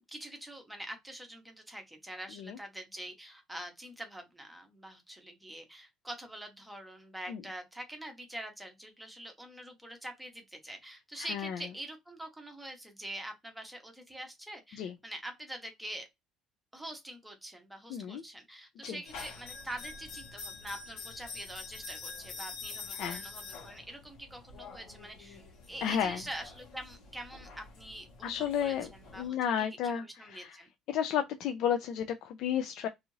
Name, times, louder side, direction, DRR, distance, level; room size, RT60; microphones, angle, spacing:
voice 1, 0.1-16.1 16.7-25.4 25.7-30.7, right 1 dB, 5° right, 0.7 m, -45 dB
voice 2, 11.2-11.6 14.7-14.9 17.9-18.2 18.8-19.0 22.9-23.2 25.8-26.2 28.2-28.9 29.2-30.6 30.9-32.9, left 9 dB, 65° left, 0.3 m, -32 dB
sound 1, 19.0-29.3, left 4 dB, 85° left, 1.2 m, -46 dB
2.6 x 2.4 x 3.0 m
cardioid pair, 155°, 0 cm